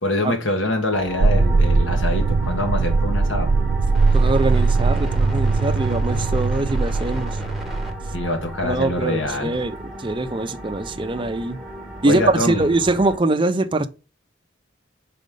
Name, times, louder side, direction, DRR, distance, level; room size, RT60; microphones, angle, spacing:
voice 1, 0.0-3.5 8.1-9.5 12.0-12.7, left 1 dB, 80° left, 1.6 m, -24 dB
sound 1, 0.9-13.2, equal, ahead, 1.2 m, -35 dB
sound 2, 1.2-8.6, right 3 dB, 85° right, 0.5 m, -20 dB
voice 2, 4.1-7.3 8.6-11.6 12.0-13.9, right 2 dB, 25° right, 0.5 m, -23 dB
5.2 x 4.2 x 5.3 m
head